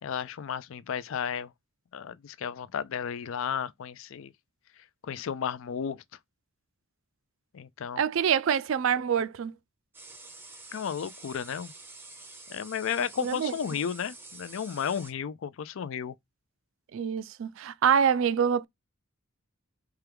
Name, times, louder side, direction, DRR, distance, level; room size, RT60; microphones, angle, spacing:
voice 1, 0.0-1.5 1.9-4.3 5.0-6.0 7.5-8.0 10.7-11.7 12.5-16.1, left 7 dB, 65° left, 0.4 m, -33 dB
voice 2, 8.0-9.5 13.2-13.5 16.9-18.7, right 7 dB, 60° right, 0.3 m, -25 dB
sound 1, 9.9-15.1, right 2 dB, 10° right, 0.6 m, -48 dB
4.5 x 2.3 x 3.4 m
head